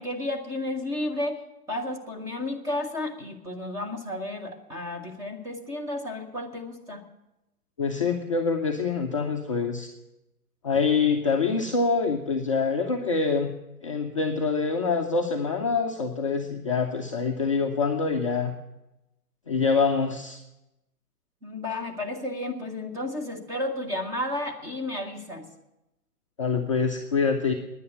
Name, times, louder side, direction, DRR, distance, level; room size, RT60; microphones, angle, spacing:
voice 1, 0.0-1.4 1.7-7.0 21.4-25.5, left 1 dB, 5° right, 1 dB, 0.8 m, -32 dB
voice 2, 7.8-9.9 10.6-13.5 13.8-18.5 19.5-20.4 26.4-27.5, left 4 dB, 20° left, 1 dB, 0.5 m, -25 dB
10.0 x 9.7 x 9.3 m, 0.94 s
figure-of-eight pair, 130°, 46 cm